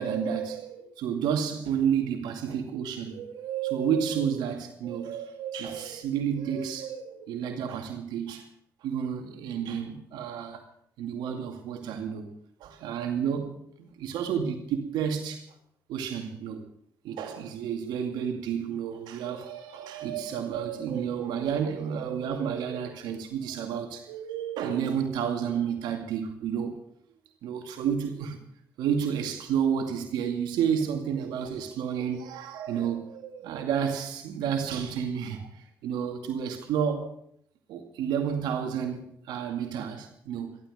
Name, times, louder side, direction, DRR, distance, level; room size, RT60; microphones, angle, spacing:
voice 1, 0.0-8.5 8.8-10.6 11.0-12.3 12.6-15.5 15.9-16.6 17.0-26.8 27.4-28.4 28.8-37.1 37.7-40.6, right 8 dB, 80° right, 2.3 m, -31 dB
14.5 x 13.0 x 6.5 m
supercardioid pair, 55°, 7 cm